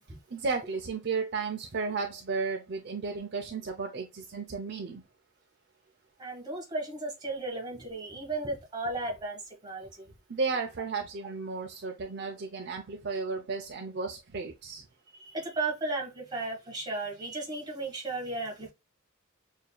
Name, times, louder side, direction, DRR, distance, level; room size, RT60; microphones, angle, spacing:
voice 1, 0.3-5.0 10.3-14.8, right 4 dB, 50° right, 0.5 m, -34 dB
voice 2, 6.2-10.1 15.2-18.7, right 2 dB, 20° right, 1.5 m, -35 dB
6.6 x 2.7 x 2.2 m
head